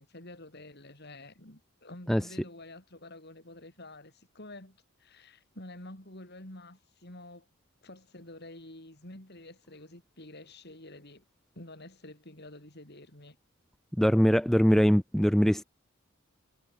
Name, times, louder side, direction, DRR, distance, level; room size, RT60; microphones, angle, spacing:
voice 1, 0.0-7.5 7.8-11.2 11.5-13.4, left 1 dB, 50° left, 4.5 m, -49 dB
voice 2, 14.0-15.6, equal, ahead, 0.7 m, -22 dB
head